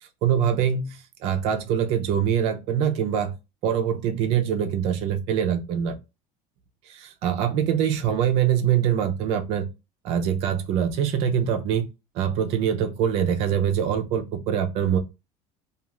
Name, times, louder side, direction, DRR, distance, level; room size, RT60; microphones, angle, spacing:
voice 1, 0.2-3.3 3.6-6.0 6.9-9.7 10.0-11.9 12.1-15.0, right 8 dB, 45° right, 0.5 m, -24 dB
2.4 x 2.4 x 3.0 m
cardioid pair, 170°, 14 cm